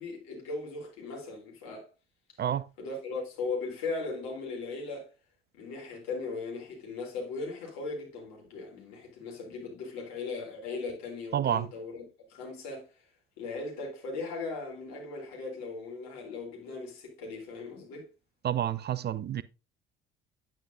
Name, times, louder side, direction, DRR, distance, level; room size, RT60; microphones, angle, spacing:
voice 1, 0.0-1.9 2.8-5.1 5.5-12.9 13.4-18.1, left 3 dB, 65° left, 3.5 m, -38 dB
voice 2, 11.3-11.7 18.4-19.4, right 10 dB, 35° right, 0.5 m, -29 dB
9.3 x 9.0 x 2.6 m
figure-of-eight pair, 50°, 30 cm